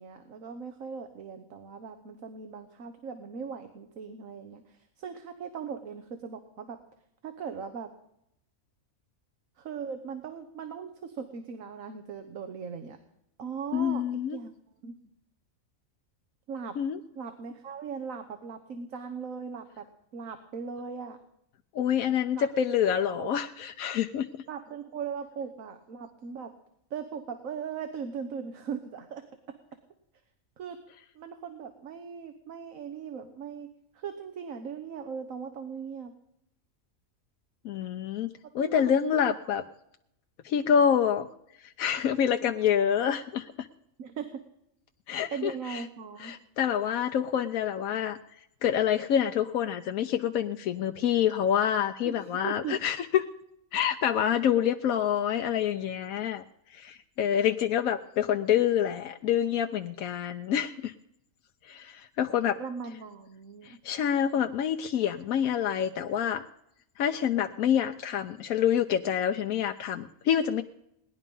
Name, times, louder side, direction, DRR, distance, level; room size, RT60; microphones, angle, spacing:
voice 1, 0.0-6.8 7.2-7.9 9.6-13.0 13.4-14.0 14.3-14.5 14.8-14.9 16.5-16.8 17.1-19.9 20.1-21.2 22.3-22.5 22.9-23.3 24.5-26.5 26.9-29.2 30.6-30.8 31.1-33.7 33.9-36.1 38.6-39.3 44.0-44.4 45.3-46.4 52.0-52.1 52.4-52.8 62.6-63.8, right 6 dB, 70° right, 7 dB, 1.5 m, -39 dB
voice 2, 13.7-14.4 16.8-17.0 21.7-24.4 37.6-39.6 40.4-41.3 41.6-43.7 45.1-45.8 46.2-48.2 48.6-53.3 53.7-56.4 56.7-60.9 61.7-62.6 63.6-66.5 67.0-70.6, left 9 dB, 85° left, 6 dB, 1.1 m, -27 dB
18.5 x 11.0 x 5.4 m, 0.78 s
omnidirectional pair, 1.4 m